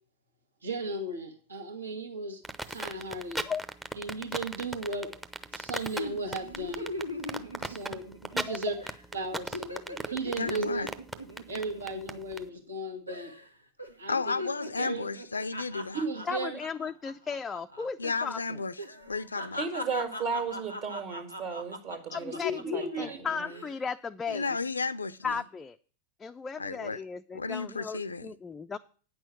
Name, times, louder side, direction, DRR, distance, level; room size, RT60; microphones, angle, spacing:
voice 1, 0.6-2.4 2.7-3.4 4.0-5.1 5.5-6.9 7.6-8.0 8.3-8.7 9.1-10.9 11.5-13.3 14.0-14.3 14.8-15.0 15.9-16.6 22.3-23.2, right 2 dB, 70° right, 1.7 m, -35 dB
sound 1, 2.4-12.4, right 1 dB, 10° right, 0.7 m, -36 dB
sound 2, 6.0-8.5 8.8-9.0 9.3-12.8 13.1-13.5 13.8-17.9 18.1-18.3 18.8-22.9 23.3-23.8, left 1 dB, 90° right, 1.1 m, -40 dB
voice 2, 10.4-10.9 14.1-16.0 18.0-18.7 19.1-19.6 24.3-25.4 26.6-27.0 27.3-28.3, left 4 dB, 75° left, 0.5 m, -33 dB
voice 3, 16.3-18.4 22.1-24.6 25.2-25.8 26.2-28.8, left 5 dB, 15° left, 0.4 m, -36 dB
voice 4, 19.6-23.6, right 5 dB, 45° right, 1.9 m, -35 dB
9.3 x 6.2 x 7.5 m
figure-of-eight pair, 90°, 0 cm